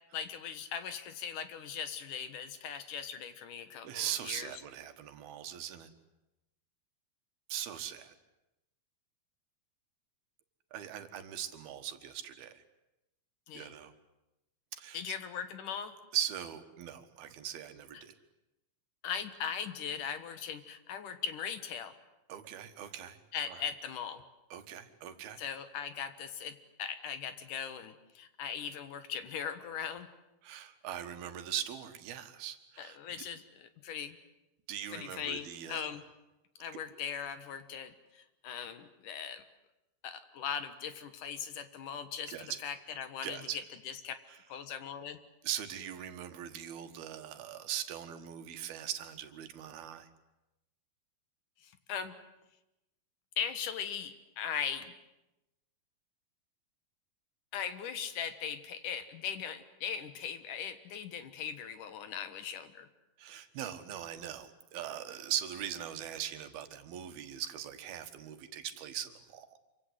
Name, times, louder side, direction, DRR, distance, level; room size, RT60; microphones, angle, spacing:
voice 1, 0.1-4.5 13.5-13.7 14.9-15.9 17.9-18.0 19.0-21.9 23.3-24.2 25.4-30.1 32.8-34.2 34.9-36.0 36.6-39.4 40.0-43.5 43.9-44.1 44.5-45.2 51.6-52.1 53.4-54.9 57.5-62.9, left 8 dB, 65° left, 10 dB, 2.7 m, -39 dB
voice 2, 3.8-5.9 7.5-8.2 10.7-12.6 13.5-13.9 14.7-15.1 16.1-18.1 22.3-23.2 23.5-23.7 24.5-25.4 30.4-33.0 34.7-35.9 42.3-42.6 43.2-43.6 45.4-50.1 63.2-69.5, right 10 dB, 90° right, 8 dB, 3.4 m, -40 dB
27.0 x 24.0 x 8.1 m, 0.96 s
omnidirectional pair, 4.3 m